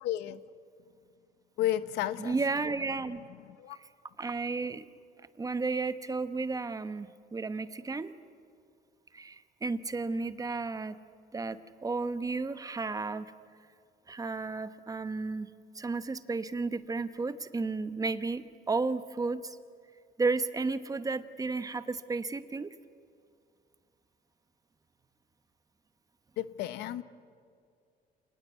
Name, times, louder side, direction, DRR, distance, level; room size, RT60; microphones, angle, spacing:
voice 1, 0.0-0.4 1.6-2.4 3.6-3.8 26.4-27.0, left 13 dB, 85° left, 1.0 m, -32 dB
voice 2, 2.2-3.2 3.7-3.8 4.2-4.9 5.4-8.1 9.1-11.0 11.3-13.3 14.1-15.5 15.7-19.6 20.2-22.7, right 3 dB, 20° right, 1.1 m, -33 dB
28.0 x 19.5 x 8.2 m
cardioid pair, 110°, 17 cm